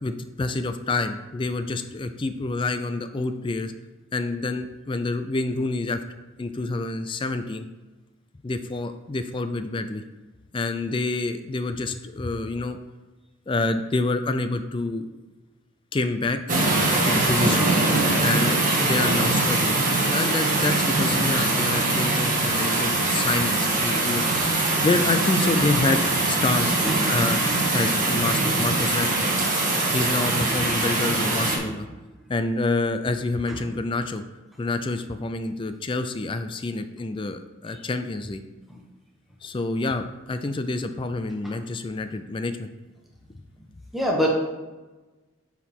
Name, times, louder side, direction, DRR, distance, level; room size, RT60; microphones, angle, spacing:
voice 1, 0.0-3.7 4.1-6.0 6.4-7.7 8.4-10.0 10.5-12.8 13.5-15.1 15.9-16.4 17.0-17.7 18.2-19.8 20.1-26.0 26.3-26.8 27.0-27.4 27.7-29.4 29.9-31.9 32.3-34.2 34.6-38.4 39.4-42.7, left 3 dB, 25° left, 9 dB, 0.3 m, -27 dB
sound 1, 16.5-31.6, right 2 dB, 40° right, 1.5 m, -22 dB
voice 2, 43.9-44.3, equal, ahead, -2 dB, 1.0 m, -26 dB
9.9 x 4.8 x 3.6 m, 1.2 s
head